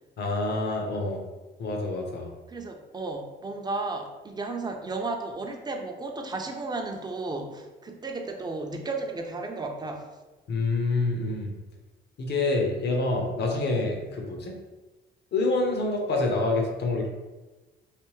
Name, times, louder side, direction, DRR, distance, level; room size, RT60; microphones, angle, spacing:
voice 1, 0.2-1.2 1.6-2.3 10.5-11.5 12.2-14.5 15.3-17.1, left 2 dB, 60° left, 1 dB, 0.8 m, -27 dB
voice 2, 2.5-10.1, right 3 dB, 20° right, 4 dB, 0.5 m, -34 dB
3.3 x 2.6 x 3.1 m, 1.2 s
cardioid pair, 90°, 20 cm